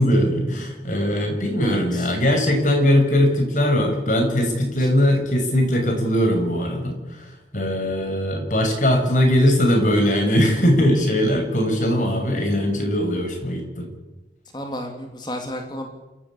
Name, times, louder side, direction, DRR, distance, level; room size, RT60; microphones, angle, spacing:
voice 1, 0.0-13.9, equal, 45° left, 3 dB, 6.3 m, -20 dB
voice 2, 1.6-2.1 4.4-4.9 14.5-15.9, left 1 dB, 25° left, 4 dB, 2.9 m, -33 dB
27.5 x 14.5 x 8.7 m, 1.1 s
head